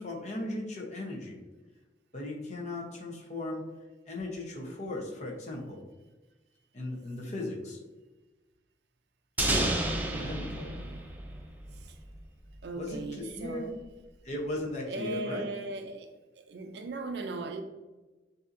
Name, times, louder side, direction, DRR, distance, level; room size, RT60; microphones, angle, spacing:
voice 1, 0.0-1.4 2.1-3.6 4.1-5.8 6.7-7.8 10.1-10.7 12.8-13.7 14.2-15.5, left 2 dB, 40° left, 0.9 m, -37 dB
sound 1, 9.4-12.2, right 1 dB, 10° right, 0.5 m, -31 dB
voice 2, 10.0-11.1 11.7-12.0 12.6-13.8 14.9-16.1 16.4-17.6, right 2 dB, 65° right, 0.4 m, -39 dB
6.6 x 2.8 x 2.6 m
head